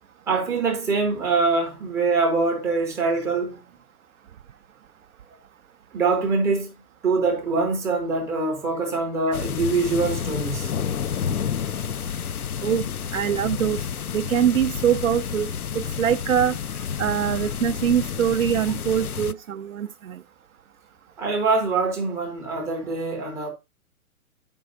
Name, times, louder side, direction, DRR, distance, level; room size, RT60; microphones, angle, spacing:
voice 1, 0.3-3.6 5.9-6.7 7.0-10.7 21.2-23.5, right 4 dB, 5° right, 0.6 m, -24 dB
sound 1, 9.3-19.3, left 7 dB, 85° left, 0.5 m, -30 dB
voice 2, 13.1-13.9 14.1-16.6 17.0-20.2, right 9 dB, 65° right, 0.6 m, -23 dB
7.8 x 5.4 x 3.9 m
figure-of-eight pair, 120°, 43 cm